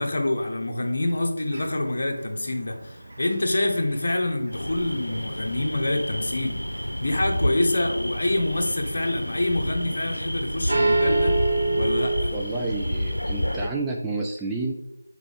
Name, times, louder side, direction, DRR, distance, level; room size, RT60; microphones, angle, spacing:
voice 1, 0.0-11.3 11.7-12.3, left 1 dB, 50° left, 3 dB, 1.1 m, -26 dB
sound 1, 1.5-5.6 5.9-6.8 7.3-7.8 8.1-10.4 10.7-12.2, right 2 dB, 55° right, 2.0 m, -26 dB
sound 2, 4.5-13.7, equal, 85° left, 0.7 m, -30 dB
voice 2, 12.3-14.7, right 3 dB, 5° right, -3 dB, 0.3 m, -30 dB
6.6 x 4.6 x 3.5 m, 0.86 s
figure-of-eight pair, 165°, 0 cm